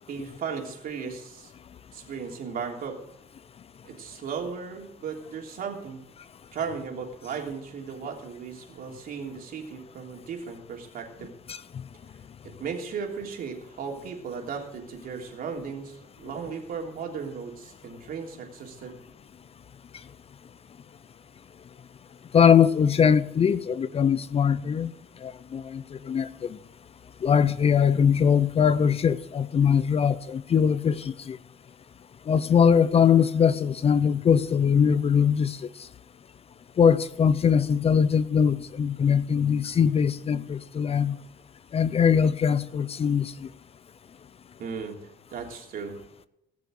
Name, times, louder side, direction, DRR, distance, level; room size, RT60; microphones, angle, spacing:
voice 1, 0.1-1.5 1.9-3.0 3.8-6.0 6.5-11.3 12.4-19.0 44.6-45.0 45.3-46.0, right 6 dB, 60° right, 3.2 m, -36 dB
voice 2, 22.3-24.9 25.2-26.6 27.2-31.4 32.3-35.6 36.8-41.2 41.7-43.3, left 7 dB, 35° left, 0.6 m, -21 dB
19.0 x 6.9 x 6.4 m
cardioid pair, 110°, 17 cm